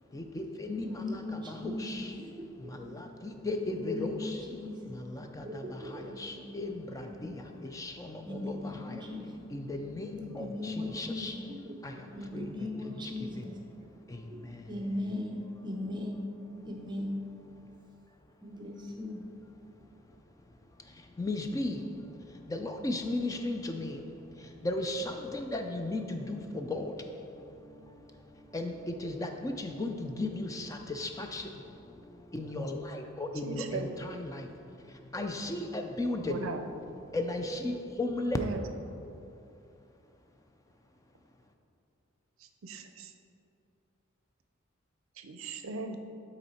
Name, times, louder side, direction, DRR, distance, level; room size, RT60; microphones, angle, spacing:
voice 1, 0.1-2.1 2.6-4.6 4.9-9.2 9.5-11.6 11.8-13.5 13.9-15.0 17.5-17.8 18.2-18.3 19.7-20.5 20.8-36.5 37.1-38.4, left 2 dB, 15° left, 5 dB, 0.3 m, -37 dB
voice 2, 0.6-3.2 3.5-7.7 8.2-9.6 10.2-13.6 14.3-16.2 16.6-17.1 18.4-19.2, left 1 dB, 20° right, 0 dB, 0.6 m, -39 dB
voice 3, 33.4-33.9 36.3-36.6 38.4-38.6 42.4-43.1 45.2-46.0, right 4 dB, 70° right, 7 dB, 0.5 m, -38 dB
8.4 x 4.0 x 4.2 m, 2.7 s
head